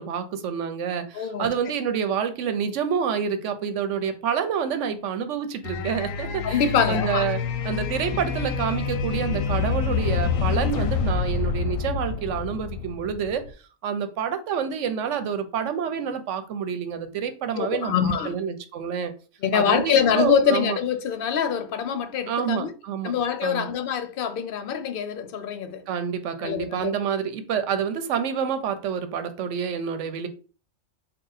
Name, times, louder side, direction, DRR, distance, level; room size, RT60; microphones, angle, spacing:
voice 1, 0.0-6.6 6.9-7.4 7.6-13.4 13.8-19.1 19.5-20.8 22.3-23.1 23.4-23.7 25.9-30.3, right 7 dB, 75° right, 0.9 m, -28 dB
voice 2, 1.1-1.5 6.4-7.3 8.1-8.2 17.6-18.4 19.4-22.7 23.0-25.8 26.4-26.9, left 7 dB, 65° left, 0.5 m, -24 dB
sound 1, 5.6-13.5, left 6 dB, 80° left, 1.0 m, -27 dB
3.8 x 2.4 x 3.9 m
omnidirectional pair, 1.3 m